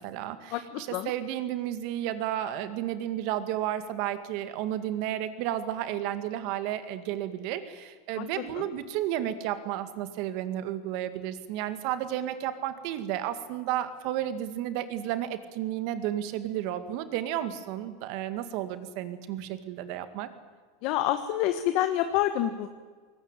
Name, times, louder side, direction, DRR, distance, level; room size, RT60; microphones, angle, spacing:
voice 1, 0.0-20.3, right 12 dB, 55° right, 11 dB, 2.2 m, -32 dB
voice 2, 20.8-22.7, left 12 dB, 50° left, 9 dB, 1.4 m, -27 dB
21.5 x 19.5 x 9.2 m, 1.5 s
supercardioid pair, 145°, 0 cm